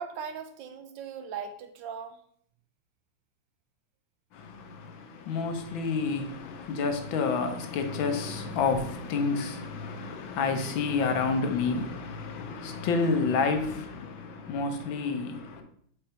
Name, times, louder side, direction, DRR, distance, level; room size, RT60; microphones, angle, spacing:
voice 1, 0.0-2.2, right 6 dB, 75° right, 1.4 m, -39 dB
voice 2, 4.3-15.6, left 4 dB, 90° left, 1.7 m, -29 dB
5.4 x 4.6 x 4.3 m
omnidirectional pair, 2.1 m